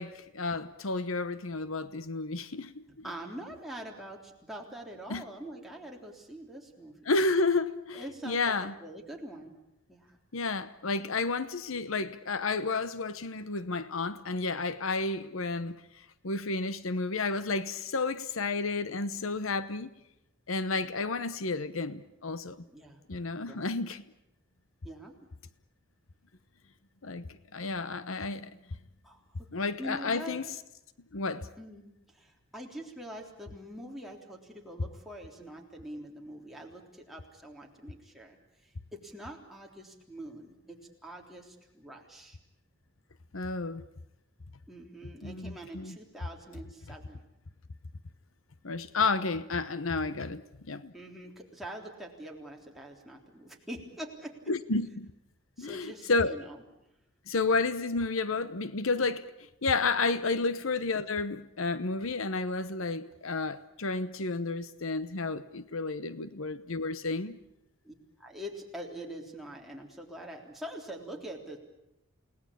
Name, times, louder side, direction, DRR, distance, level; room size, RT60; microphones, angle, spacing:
voice 1, 0.0-2.8 5.1-5.2 7.1-8.7 10.3-15.8 16.2-19.9 20.5-22.6 23.1-24.0 27.0-28.5 29.5-30.4 31.1-31.5 43.3-43.8 45.2-46.0 48.6-50.4 50.7-50.9 54.5-55.1 55.6-56.3 57.3-59.3 59.6-67.4, left 3 dB, 75° left, 1.0 m, -31 dB
voice 2, 2.9-7.1 7.9-9.5 9.9-10.2 20.7-21.0 22.7-23.0 23.5-23.7 24.8-25.2 29.0-29.5 29.8-30.4 31.6-42.4 44.7-47.2 50.1-50.3 50.9-54.4 55.6-56.6 67.8-71.6, right 1 dB, ahead, 3.6 m, -44 dB
29.0 x 18.5 x 8.6 m
head